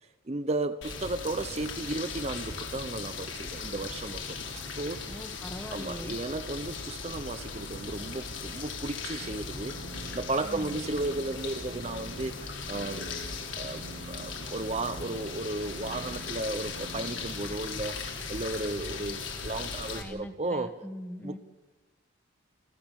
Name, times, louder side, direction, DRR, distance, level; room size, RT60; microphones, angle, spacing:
voice 1, 0.3-4.4 4.7-5.2 5.7-9.8 10.1-13.2 13.5-20.7 21.2-21.4, right 2 dB, 30° right, 0.7 m, -34 dB
sound 1, 0.8-20.0, left 4 dB, 70° left, 3.5 m, -38 dB
voice 2, 5.1-6.2 10.4-10.8 19.9-21.4, equal, 10° left, 1.3 m, -41 dB
sound 2, 9.2-17.3, right 2 dB, 70° right, 1.5 m, -47 dB
29.0 x 13.5 x 7.5 m
head